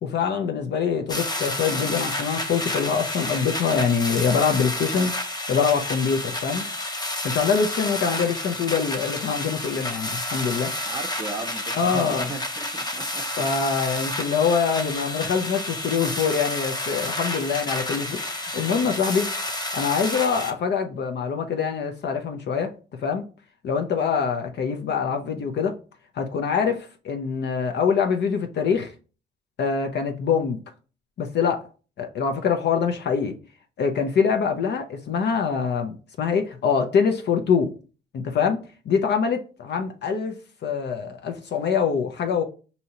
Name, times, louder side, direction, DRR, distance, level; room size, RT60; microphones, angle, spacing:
voice 1, 0.0-5.1 5.5-6.7 7.2-10.7 11.7-12.3 13.4-19.3 19.7-22.7 23.0-23.2 23.6-25.7 26.1-28.9 29.6-30.6 31.2-31.6 32.0-33.3 33.8-37.7 38.1-38.6 38.9-40.3 40.6-42.4, left 6 dB, 60° left, 0.6 m, -24 dB
sound 1, 1.1-20.5, left 1 dB, 20° left, 0.8 m, -30 dB
voice 2, 10.8-13.5, right 3 dB, 20° right, 0.6 m, -36 dB
5.2 x 2.7 x 2.9 m
cardioid pair, 90°, 20 cm